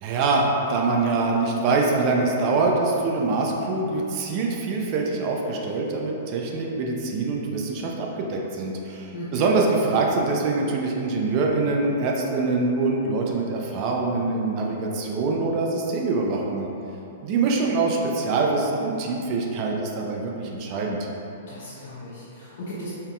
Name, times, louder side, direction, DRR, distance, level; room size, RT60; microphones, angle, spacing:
voice 1, 0.0-16.7 17.2-21.0, right 3 dB, 45° right, -1 dB, 0.5 m, -24 dB
voice 2, 9.1-9.5 21.5-22.9, equal, 65° left, -9 dB, 0.7 m, -36 dB
4.3 x 3.5 x 2.3 m, 2.9 s
hypercardioid pair, 115°, 0 cm